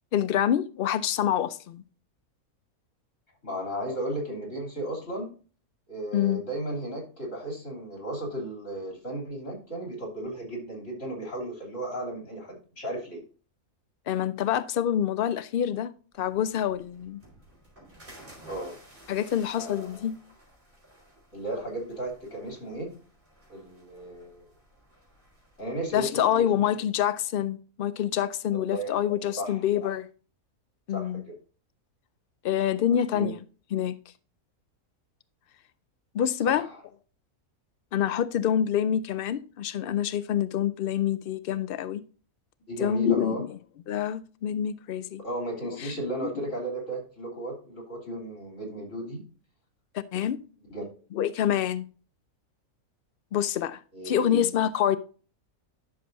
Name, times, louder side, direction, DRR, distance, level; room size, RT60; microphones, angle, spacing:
voice 1, 0.1-1.8 6.1-6.4 14.1-15.9 16.2-17.2 19.1-20.2 25.9-30.1 30.9-31.2 32.4-33.4 33.7-34.0 36.1-36.7 37.9-42.0 42.8-43.5 43.9-45.2 45.7-45.9 46.2-46.4 50.1-50.4 51.1-51.9 53.3-53.8 54.0-55.0, left 10 dB, 90° left, 0.4 m, -26 dB
voice 2, 3.4-5.3 5.9-13.2 18.5-18.8 19.6-20.0 21.3-22.9 23.5-24.5 25.6-26.8 28.5-28.9 29.4-29.9 30.9-31.3 32.9-33.3 36.4-36.8 42.7-43.4 45.2-49.2 50.7-50.9 53.9-54.3, right 1 dB, 55° left, 3.5 m, -35 dB
sound 1, 16.1-26.0, right 1 dB, 35° right, 4.4 m, -54 dB
11.0 x 6.6 x 2.6 m
omnidirectional pair, 1.5 m